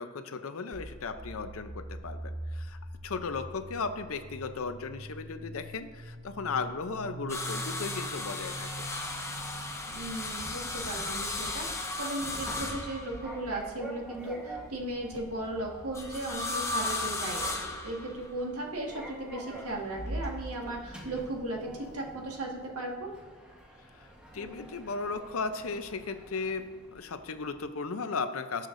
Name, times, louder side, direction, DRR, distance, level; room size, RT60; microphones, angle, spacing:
voice 1, 0.0-8.9 23.9-24.1 24.3-28.7, left 4 dB, 70° left, 9 dB, 0.6 m, -36 dB
sound 1, 0.7-10.5, right 1 dB, 30° right, 0.9 m, -43 dB
sound 2, 7.3-13.6 15.9-18.4 19.5-20.3 21.7-21.8, left 2 dB, 15° left, 0.6 m, -36 dB
Sliding door, 8.1-27.7, right 1 dB, 5° right, 1.2 m, -46 dB
voice 2, 9.9-17.6 17.8-23.1, right 1 dB, 80° right, -1 dB, 1.6 m, -36 dB
18.5 x 6.6 x 2.6 m, 1.5 s
head